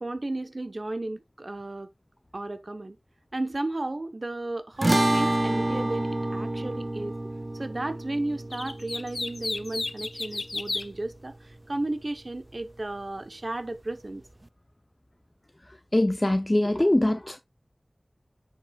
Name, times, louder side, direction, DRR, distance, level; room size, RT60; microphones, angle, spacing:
voice 1, 0.0-1.9 2.3-3.0 3.3-7.1 7.5-14.2, right 2 dB, 55° right, 0.9 m, -34 dB
sound 1, 4.8-11.3, right 1 dB, 35° right, 0.4 m, -29 dB
sound 2, 8.5-10.9, left 3 dB, 80° left, 0.6 m, -33 dB
voice 2, 15.9-17.4, left 1 dB, 30° left, 0.6 m, -22 dB
9.9 x 7.1 x 2.3 m
wide cardioid pair, 45°, 0 cm